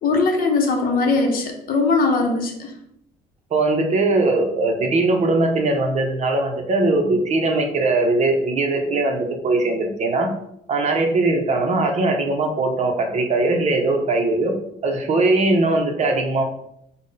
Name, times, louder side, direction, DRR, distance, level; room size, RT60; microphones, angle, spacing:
voice 1, 0.0-2.7, left 3 dB, 60° left, 3 dB, 0.7 m, -20 dB
voice 2, 3.5-10.3 10.7-14.5 14.8-16.4, right 2 dB, 40° right, 4 dB, 0.6 m, -20 dB
3.7 x 2.1 x 3.8 m, 0.76 s
cardioid pair, 110°, 17 cm